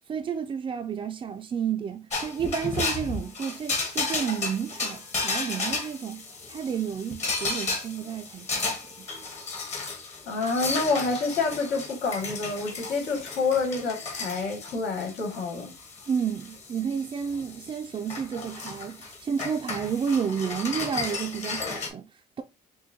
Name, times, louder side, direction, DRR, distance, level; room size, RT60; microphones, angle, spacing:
voice 1, 0.1-9.1 16.1-22.4, right 7 dB, 30° right, 0.4 m, -31 dB
sound 1, 2.1-21.9, left 3 dB, 40° left, 1.3 m, -34 dB
voice 2, 10.3-15.7, left 4 dB, 85° left, 2.2 m, -28 dB
6.2 x 2.2 x 2.8 m
cardioid pair, 110°, 17 cm